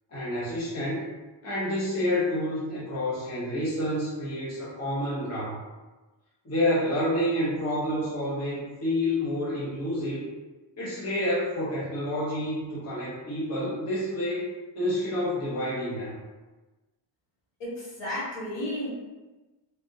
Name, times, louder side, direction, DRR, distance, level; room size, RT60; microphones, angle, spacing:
voice 1, 0.1-1.0 1.4-5.6 6.4-10.3 10.8-14.5 14.8-16.1, left 1 dB, 30° left, -8 dB, 0.9 m, -29 dB
voice 2, 17.6-18.9, left 1 dB, 65° left, -7 dB, 1.3 m, -33 dB
3.4 x 2.4 x 2.7 m, 1.2 s
cardioid pair, 170°, 47 cm